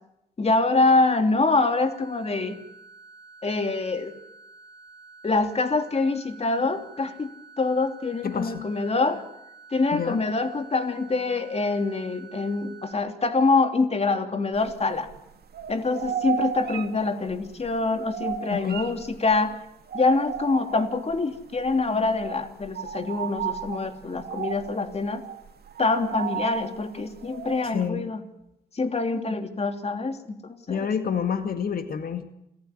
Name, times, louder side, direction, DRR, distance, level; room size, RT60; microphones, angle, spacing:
voice 1, 0.4-2.6 3.4-4.2 5.2-7.3 7.6-9.2 9.7-15.1 15.7-19.5 19.9-25.2 25.8-28.2 28.7-30.9, left 3 dB, 40° left, 7 dB, 3.1 m, -25 dB
sound 1, 1.5-12.9, right 4 dB, 5° right, 7.5 m, -49 dB
voice 2, 8.2-8.6 9.9-10.2 18.5-18.8 27.7-28.0 30.7-32.3, left 7 dB, 65° left, 7 dB, 2.3 m, -28 dB
sound 2, 14.6-15.3 15.5-19.5 19.9-21.2 21.6-21.8 22.1-27.8, right 8 dB, 70° right, 2.6 m, -34 dB
27.5 x 14.5 x 10.0 m, 0.84 s
cardioid pair, 75°, 17 cm